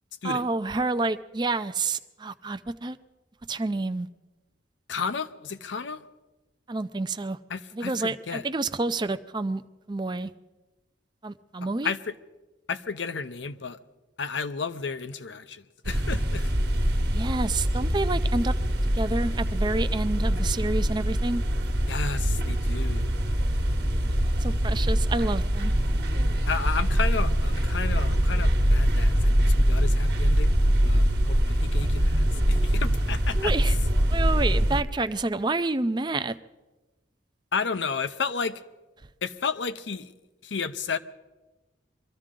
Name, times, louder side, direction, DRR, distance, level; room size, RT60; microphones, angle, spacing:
voice 1, 0.2-3.0 3.5-4.1 6.7-7.4 7.7-9.6 9.9-10.3 11.2-11.9 17.1-18.5 18.9-21.4 24.1-25.7 33.4-33.8 34.1-36.3, right 3 dB, 25° right, 0.5 m, -29 dB
voice 2, 4.9-6.0 7.5-8.4 11.8-12.1 12.7-13.8 14.2-16.5 21.9-23.1 26.5-30.6 30.8-33.5 37.5-38.6 39.2-40.1 40.4-41.0, left 5 dB, 80° left, 0.7 m, -32 dB
sound 1, 15.9-34.8, equal, 55° right, 1.3 m, -23 dB
23.5 x 14.5 x 3.8 m
head